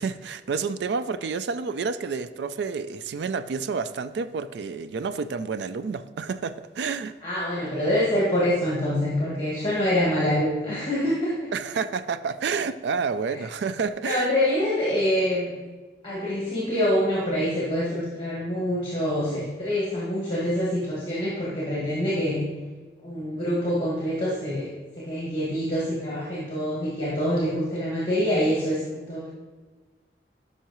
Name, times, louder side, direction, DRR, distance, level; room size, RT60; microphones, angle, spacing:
voice 1, 0.0-7.1 11.5-14.3, right 5 dB, 75° right, 13 dB, 0.3 m, -29 dB
voice 2, 7.2-11.5 13.3-13.4 14.0-15.5 16.0-22.4 23.0-24.7 25.0-29.3, equal, 30° left, -7 dB, 1.9 m, -25 dB
11.5 x 5.7 x 3.0 m, 1.3 s
head